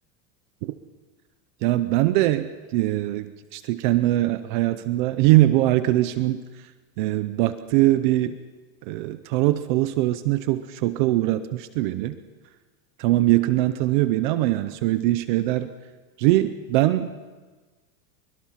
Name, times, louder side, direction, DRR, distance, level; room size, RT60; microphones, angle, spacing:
voice 1, 1.6-6.4 7.0-8.4 8.9-12.2 13.0-15.7 16.2-17.1, right 16 dB, 35° right, 12 dB, 0.6 m, -22 dB
23.5 x 22.0 x 5.7 m, 1.3 s
supercardioid pair, 175°, 43 cm